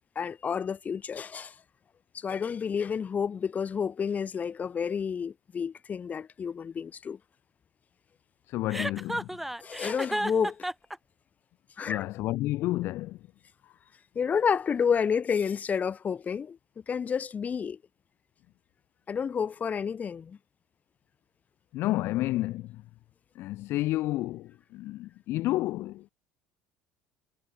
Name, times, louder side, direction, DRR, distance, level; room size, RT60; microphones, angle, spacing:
voice 1, 0.2-1.5 2.1-7.2 9.6-10.7 11.8-12.0 14.2-16.6 16.9-17.8 19.1-20.4, left 6 dB, 30° left, 2.1 m, -30 dB
voice 2, 8.5-9.3 11.9-13.2 21.7-22.8 23.3-26.1, left 17 dB, 50° left, 0.9 m, -30 dB
Chuckle chortle, 8.7-11.0, right 1 dB, 5° right, 0.6 m, -32 dB
figure-of-eight pair, 60°, 5 cm